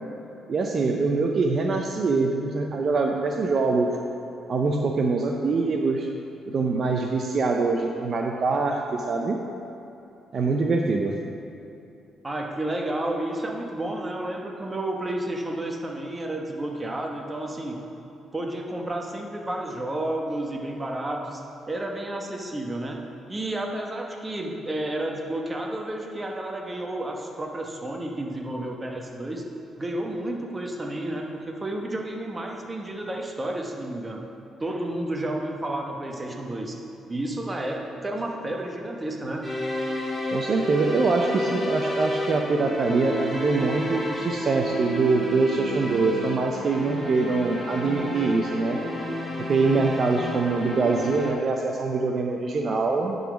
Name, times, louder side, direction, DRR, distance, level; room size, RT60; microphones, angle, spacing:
voice 1, 0.5-3.9 4.5-6.1 6.5-9.4 10.3-11.2 40.3-48.8 49.5-53.2, right 3 dB, 50° right, 2 dB, 0.6 m, -24 dB
voice 2, 12.2-17.8 18.3-21.4 21.7-23.0 23.3-29.4 29.8-34.2 34.6-36.8 37.1-39.4, right 1 dB, 20° right, 1 dB, 1.1 m, -31 dB
sound 1, 39.4-51.3, left 1 dB, ahead, 2.1 m, -31 dB
9.8 x 4.0 x 6.1 m, 2.8 s
cardioid pair, 90°, 0 cm